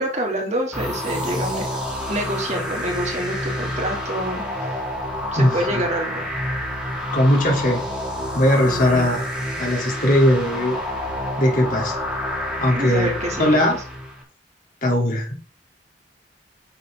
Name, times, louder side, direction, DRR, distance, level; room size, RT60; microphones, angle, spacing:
voice 1, 0.0-1.7 2.1-4.8 5.3-6.3 8.6-9.1 12.8-13.8, right 1 dB, 40° right, 1 dB, 2.5 m, -27 dB
sound 1, 0.7-14.2, left 1 dB, 5° right, 3.8 m, -28 dB
voice 2, 7.1-7.8 8.3-9.3 9.6-10.8 11.4-11.9 12.6-13.1 13.4-13.8 14.8-15.4, left 1 dB, 50° left, 0 dB, 3.0 m, -19 dB
9.5 x 6.7 x 3.7 m, 0.38 s
head